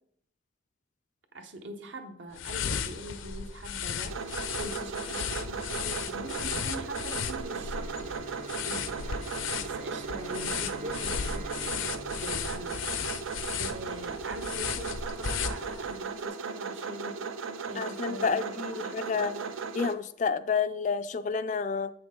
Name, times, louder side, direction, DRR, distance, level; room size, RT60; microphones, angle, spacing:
voice 1, 1.3-8.1 8.7-8.9 9.6-17.2 17.7-19.5, right 1 dB, 70° right, 0.9 m, -43 dB
sound 1, 2.3-16.0, left 7 dB, 80° left, 0.6 m, -35 dB
sound 2, 4.1-19.9, right 5 dB, 90° right, 0.6 m, -37 dB
Bowed string instrument, 7.5-13.7, right 3 dB, 35° right, 0.3 m, -47 dB
voice 2, 17.8-19.3 19.7-21.9, left 5 dB, 40° left, 0.3 m, -29 dB
8.3 x 6.1 x 3.7 m
head